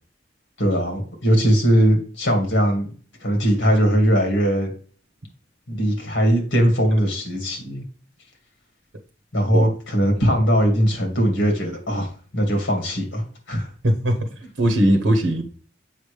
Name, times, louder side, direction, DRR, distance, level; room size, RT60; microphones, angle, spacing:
voice 1, 0.6-2.9 3.2-4.7 5.7-7.8 9.3-13.7, equal, 80° left, 3 dB, 2.1 m, -20 dB
voice 2, 13.8-14.3 14.6-15.4, right 1 dB, 75° right, 4 dB, 1.0 m, -19 dB
7.3 x 5.3 x 3.3 m, 0.42 s
head